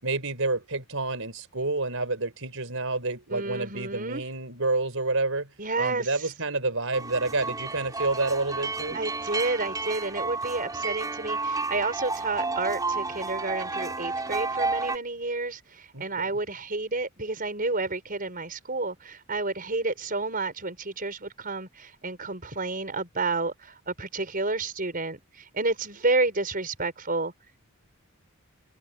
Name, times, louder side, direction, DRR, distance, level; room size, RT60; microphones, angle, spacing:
voice 1, 0.0-5.5 5.8-9.0 15.9-16.3, right 3 dB, 60° right, 5.8 m, -29 dB
voice 2, 3.3-4.2 5.6-6.3 8.9-27.3, right 3 dB, 40° right, 5.5 m, -30 dB
sound 1, 6.9-15.0, right 3 dB, 15° right, 4.5 m, -31 dB
head